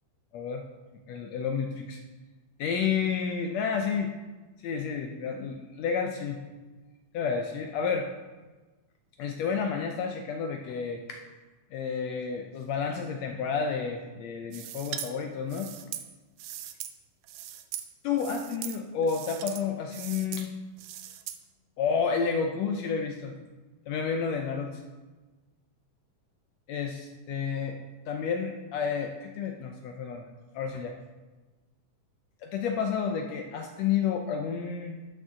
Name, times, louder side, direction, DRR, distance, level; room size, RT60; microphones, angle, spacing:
voice 1, 1.1-2.0 2.6-4.1 4.6-6.4 7.1-8.1 9.2-11.2 11.7-15.7 18.0-20.5 21.8-23.3 23.9-24.8 26.7-27.8 28.1-30.3 30.5-31.0 32.4-35.0, left 6 dB, 80° left, 4 dB, 1.5 m, -30 dB
sound 1, 14.5-15.1 15.5-16.9 17.2-17.9 18.2-18.8 19.0-19.6 19.9-20.5 20.8-21.4, right 11 dB, 90° right, 1.5 m, -40 dB
12.5 x 6.4 x 3.8 m, 1.2 s
omnidirectional pair, 3.7 m